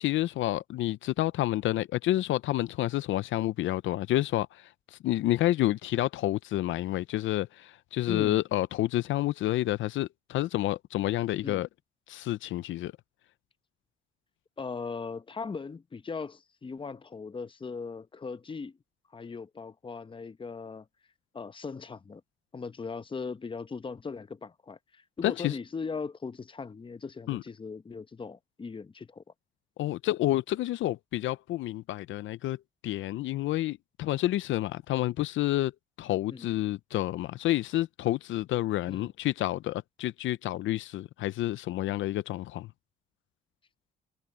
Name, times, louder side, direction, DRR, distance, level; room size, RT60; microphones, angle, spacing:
voice 1, 0.0-11.7 12.1-12.9 25.2-25.6 27.3-27.4 29.8-32.6 32.8-35.7 36.0-42.7, left 15 dB, 75° left, 0.5 m, -29 dB
voice 2, 8.1-8.4 11.4-11.6 14.6-18.8 19.1-20.9 21.3-22.2 22.5-29.2 36.3-36.5 38.9-39.1, left 5 dB, 25° left, 0.9 m, -39 dB
cardioid pair, 90°, 20 cm